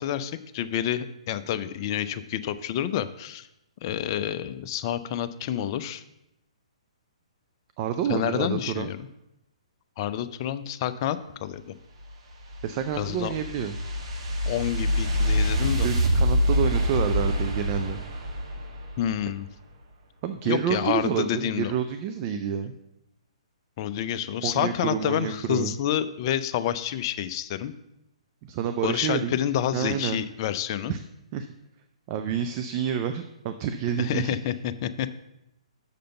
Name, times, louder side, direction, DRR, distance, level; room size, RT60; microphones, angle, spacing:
voice 1, 0.0-3.5 3.8-6.0 8.1-9.0 10.0-11.7 13.0-13.3 14.5-15.9 19.0-19.5 20.4-21.7 23.8-27.7 28.8-30.9 34.0-35.2, left 11 dB, 40° left, 11 dB, 0.5 m, -28 dB
voice 2, 7.8-8.9 12.6-13.8 15.8-18.0 20.2-22.8 24.4-25.7 28.4-29.4 29.7-30.2 30.9-31.0 31.3-31.5 32.1-34.3, right 8 dB, 35° right, 8 dB, 0.5 m, -28 dB
sound 1, 12.0-19.3, equal, 50° right, 1.5 m, -26 dB
6.6 x 5.1 x 6.8 m, 0.87 s
figure-of-eight pair, 125°, 4 cm